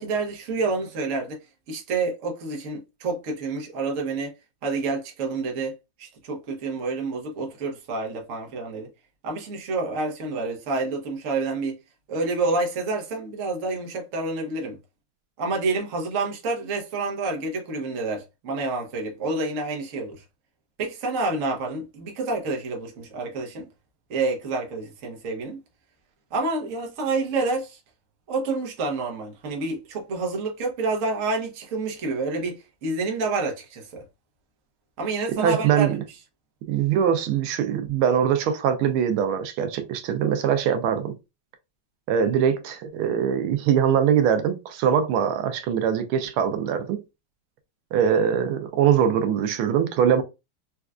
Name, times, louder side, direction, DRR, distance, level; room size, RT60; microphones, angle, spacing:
voice 1, 0.0-1.4 1.7-4.3 4.6-8.9 9.2-11.8 12.1-14.8 15.4-20.2 20.8-23.7 24.1-25.6 26.3-27.8 28.3-34.0 35.0-35.9, right 3 dB, 50° right, 1.1 m, -28 dB
voice 2, 35.4-36.0 36.7-41.1 42.1-47.0 47.9-50.2, right 8 dB, 85° right, 1.4 m, -22 dB
4.3 x 2.3 x 2.3 m
omnidirectional pair, 2.3 m